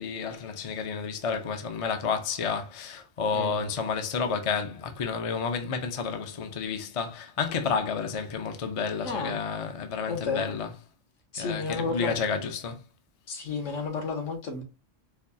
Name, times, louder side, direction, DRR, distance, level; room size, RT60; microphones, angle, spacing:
voice 1, 0.0-10.7 11.4-12.8, left 5 dB, 45° left, 0.4 m, -30 dB
voice 2, 3.3-3.7 9.0-9.3 10.1-10.5 11.3-12.2 13.3-14.6, left 4 dB, 75° left, 1.3 m, -32 dB
4.5 x 2.3 x 2.6 m
omnidirectional pair, 1.3 m